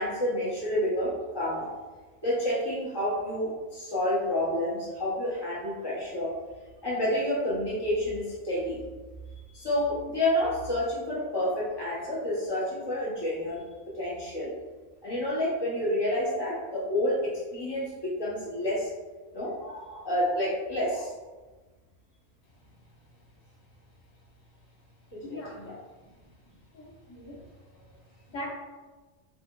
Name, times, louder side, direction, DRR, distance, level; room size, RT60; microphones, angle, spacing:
voice 1, 0.0-1.7 2.2-6.3 6.8-8.8 9.5-13.6 13.9-14.5 15.0-18.9 19.3-21.1 25.1-25.7, left 1 dB, 20° left, -7 dB, 0.8 m, -29 dB
voice 2, 25.2-25.7 26.7-27.4 28.3-28.5, left 1 dB, 75° left, -3 dB, 1.2 m, -40 dB
4.4 x 2.1 x 2.2 m, 1.3 s
omnidirectional pair, 1.4 m